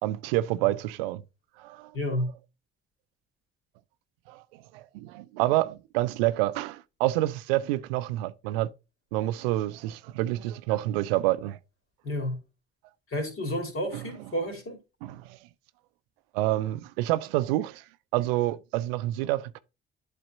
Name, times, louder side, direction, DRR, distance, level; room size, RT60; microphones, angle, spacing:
voice 1, 0.0-1.2 1.6-1.9 4.3-8.7 9.1-11.6 13.9-14.1 15.0-15.2 16.3-17.8 18.1-19.6, right 16 dB, 70° right, 0.5 m, -28 dB
voice 2, 1.9-2.3 12.0-12.4 13.1-14.8, equal, 45° left, 3.0 m, -30 dB
11.5 x 4.2 x 2.6 m
figure-of-eight pair, 40°, 30 cm